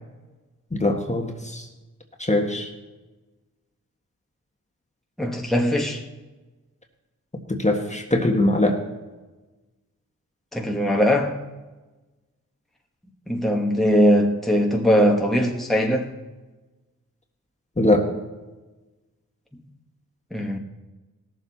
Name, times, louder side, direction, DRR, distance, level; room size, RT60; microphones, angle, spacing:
voice 1, 0.7-1.6 2.2-2.7 7.5-8.8 17.8-18.0, left 1 dB, 20° left, 1.5 m, -21 dB
voice 2, 5.2-6.0 10.5-11.4 13.3-16.1 20.3-20.6, equal, ahead, 1.4 m, -20 dB
17.0 x 7.2 x 4.1 m
cardioid pair, 55°, 34 cm